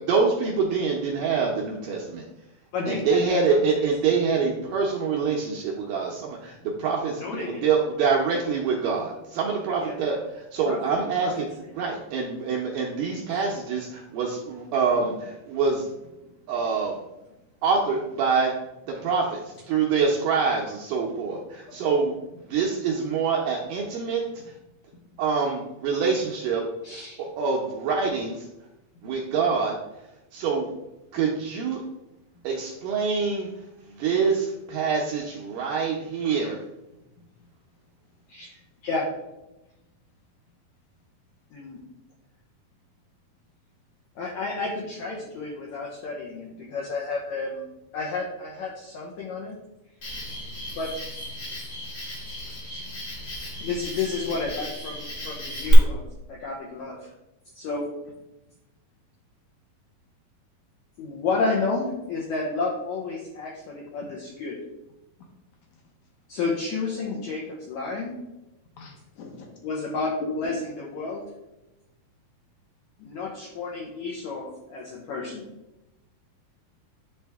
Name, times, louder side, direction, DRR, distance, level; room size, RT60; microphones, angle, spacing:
voice 1, 0.1-2.3 2.9-11.5 11.7-15.9 16.5-17.0 17.6-18.6 18.9-22.1 22.5-24.2 25.2-26.6 27.2-28.5 29.0-29.8 30.3-30.7 31.1-31.8 32.4-33.5 33.8-36.6, right 5 dB, 80° right, -1 dB, 1.9 m, -25 dB
voice 2, 2.7-3.6 7.2-7.6 9.8-9.9 10.6-11.3 12.1-12.2 13.3-13.4 26.8-27.2 38.3-38.6 38.8-39.1 41.5-41.8 44.2-47.6 47.9-49.5 50.7-50.9 52.7-52.9 53.6-56.0 56.3-57.1 57.5-57.9 61.0-64.6 66.3-68.2 69.6-71.3 73.0-75.5, left 4 dB, 85° left, -2 dB, 1.6 m, -31 dB
voice 3, 37.2-37.5 65.2-65.3 65.7-65.8 68.8-69.5 70.2-70.6, left 3 dB, 70° left, 1 dB, 1.7 m, -39 dB
Cricket, 50.0-55.7, left 1 dB, 50° left, 1.2 m, -35 dB
10.0 x 3.4 x 3.4 m, 0.96 s
omnidirectional pair, 4.5 m